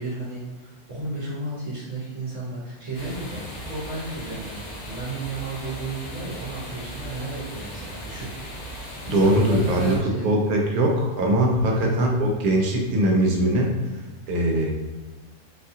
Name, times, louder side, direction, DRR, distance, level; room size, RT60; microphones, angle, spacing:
voice 1, 0.0-8.3 9.1-10.5 11.5-12.0, right 3 dB, 60° right, -9 dB, 1.2 m, -33 dB
sound 1, 2.9-10.0, equal, 65° left, 1.2 m, -37 dB
voice 2, 9.1-13.7 14.3-14.7, right 1 dB, 80° right, 0 dB, 1.2 m, -21 dB
4.0 x 2.4 x 2.7 m, 1.2 s
omnidirectional pair, 1.6 m